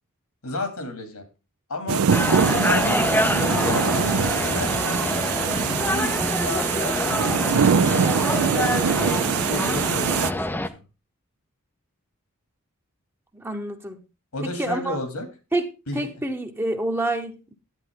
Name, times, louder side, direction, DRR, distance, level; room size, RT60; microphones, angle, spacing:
voice 1, 0.4-1.2 1.7-2.0 2.4-5.0 5.6-7.0 7.3-10.8 14.3-15.3 15.9-16.1, left 2 dB, 80° left, 2.8 m, -32 dB
sound 1, 1.9-10.3, right 7 dB, 70° right, 0.5 m, -23 dB
sound 2, 2.1-10.7, left 1 dB, 10° left, 0.5 m, -25 dB
voice 2, 13.3-14.0 14.6-15.0 15.5-15.7 15.9-17.5, right 1 dB, 10° right, 0.9 m, -27 dB
11.0 x 8.9 x 3.7 m
head